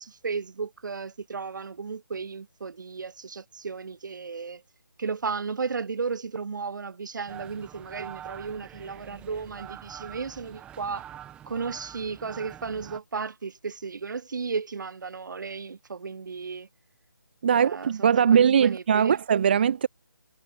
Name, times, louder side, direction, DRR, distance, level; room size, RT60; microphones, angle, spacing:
voice 1, 0.0-4.6 5.0-11.1 11.4-16.7 17.5-19.1, right 5 dB, 60° right, 1.5 m, -34 dB
sound 1, 7.3-13.0, right 11 dB, 10° right, 2.4 m, -45 dB
voice 2, 17.4-19.9, right 7 dB, 30° right, 0.4 m, -21 dB
figure-of-eight pair, 160°, 12 cm